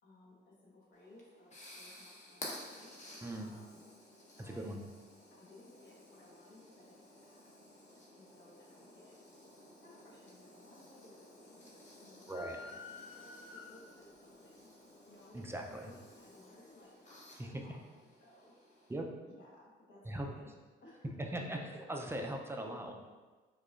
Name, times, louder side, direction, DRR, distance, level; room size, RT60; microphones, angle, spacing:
voice 1, 0.0-2.9 3.4-3.9 4.4-4.8 5.3-7.5 7.9-9.2 9.8-14.7 15.0-17.8 18.2-18.5 19.3-20.5 20.8-21.8 22.2-22.3, left 1 dB, 65° left, -4 dB, 1.1 m, -59 dB
sound 1, 0.9-18.9, left 1 dB, 35° left, 0.9 m, -54 dB
voice 2, 4.4-4.8 12.3-12.6 15.3-15.8 17.4-17.6 18.9-19.1 20.1-20.3 21.3-21.6 21.9-22.9, right 1 dB, 10° right, 2 dB, 0.4 m, -39 dB
sound 2, 12.3-14.1, left 4 dB, 90° left, 0.5 m, -50 dB
4.8 x 2.3 x 2.4 m, 1.3 s
cardioid pair, 90°, 20 cm